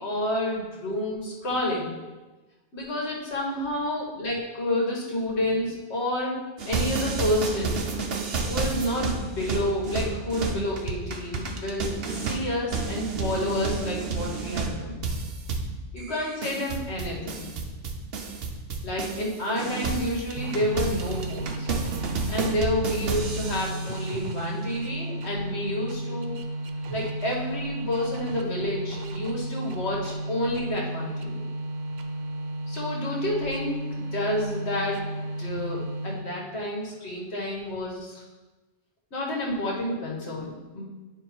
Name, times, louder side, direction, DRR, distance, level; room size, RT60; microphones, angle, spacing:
voice 1, 0.0-2.0 2.7-6.4 6.7-7.8 8.5-15.0 15.9-17.5 18.8-21.7 22.3-26.4 26.9-31.5 32.7-35.0 35.4-38.2 39.1-40.8, left 1 dB, 65° left, -3 dB, 1.8 m, -29 dB
sound 1, 6.6-19.3 19.6-24.0, right 4 dB, 60° right, 1.0 m, -31 dB
sound 2, 20.4-36.5, right 1 dB, 90° right, 1.0 m, -33 dB
9.8 x 3.4 x 4.5 m, 1.2 s
omnidirectional pair, 1.2 m